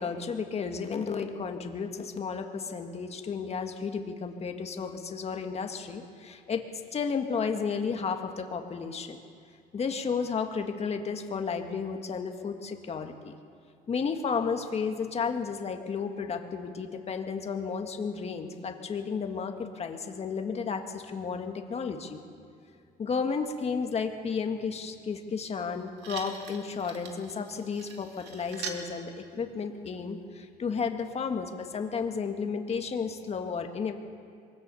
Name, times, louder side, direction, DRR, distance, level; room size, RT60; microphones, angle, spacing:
voice 1, 0.0-6.6 6.9-9.2 9.7-13.4 13.9-22.2 23.0-33.9, left 5 dB, 35° left, 5 dB, 1.7 m, -33 dB
sound 1, 25.6-25.7 26.0-28.9 29.9-30.0, right 6 dB, 80° right, 2.3 m, -42 dB
23.0 x 17.0 x 7.0 m, 2.3 s
cardioid pair, 110°, 18 cm